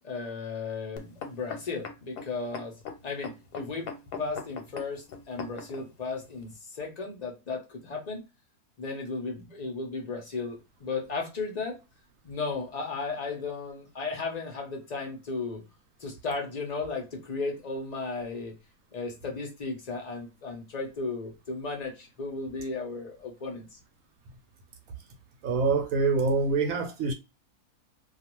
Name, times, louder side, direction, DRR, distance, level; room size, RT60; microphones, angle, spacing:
voice 1, 0.0-2.8 3.0-3.9 4.2-8.2 8.8-11.8 12.2-15.6 16.0-18.5 18.9-23.7, left 4 dB, 60° left, 0.4 m, -35 dB
sound 1, 1.0-5.9 6.5-6.6, left 6 dB, 90° left, 1.2 m, -40 dB
voice 2, 25.4-27.1, right 4 dB, 70° right, 0.9 m, -25 dB
2.4 x 2.3 x 2.9 m
omnidirectional pair, 1.7 m